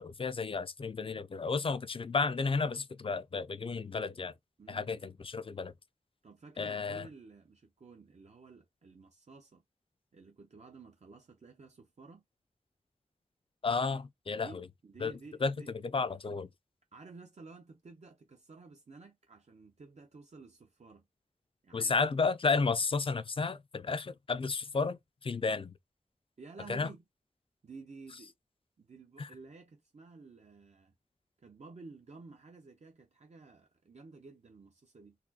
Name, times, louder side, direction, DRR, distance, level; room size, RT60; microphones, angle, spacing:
voice 1, 0.0-4.3 4.7-5.7 6.6-7.1 13.6-14.6 15.0-15.1 15.4-15.6 15.8-16.5 21.7-25.7 26.7-26.9 29.2-29.3, left 4 dB, 40° left, 0.4 m, -32 dB
voice 2, 4.6-5.1 6.2-9.6 10.1-12.2 14.3-15.7 16.9-21.0 21.6-22.0 26.4-27.0 27.6-28.3 28.8-30.9 31.4-35.2, right 4 dB, 55° right, 0.7 m, -53 dB
4.1 x 2.2 x 2.7 m
wide cardioid pair, 60°, 14 cm